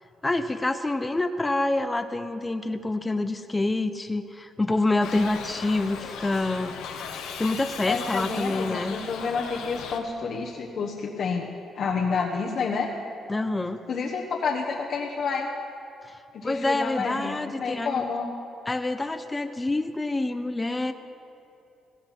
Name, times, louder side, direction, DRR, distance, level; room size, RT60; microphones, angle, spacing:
voice 1, 0.2-6.8 7.4-9.0 13.3-13.8 16.0-16.2 16.4-18.0 18.7-20.9, left 2 dB, 15° left, 8 dB, 0.7 m, -27 dB
Shout / Livestock farm animals working animals, 5.0-10.0, left 6 dB, 85° left, 1.3 m, -37 dB
voice 2, 7.8-11.5 11.7-12.9 13.9-15.5 16.3-17.3 17.6-18.3, left 5 dB, 60° left, -1 dB, 1.3 m, -29 dB
17.5 x 16.0 x 4.4 m, 2.8 s
cardioid pair, 90°, 0 cm